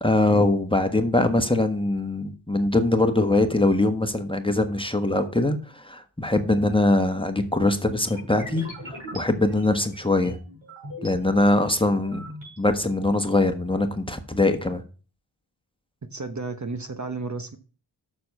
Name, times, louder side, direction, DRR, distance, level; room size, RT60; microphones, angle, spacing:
voice 1, 0.0-10.4 11.0-12.2 12.6-14.8, left 2 dB, 10° left, 6 dB, 1.3 m, -22 dB
sound 1, 8.0-11.1 11.6-12.6, equal, 75° right, 5.5 m, -41 dB
voice 2, 16.1-17.6, right 3 dB, 40° right, 7 dB, 1.2 m, -32 dB
6.9 x 6.5 x 5.4 m, 0.36 s
cardioid pair, 60°, 46 cm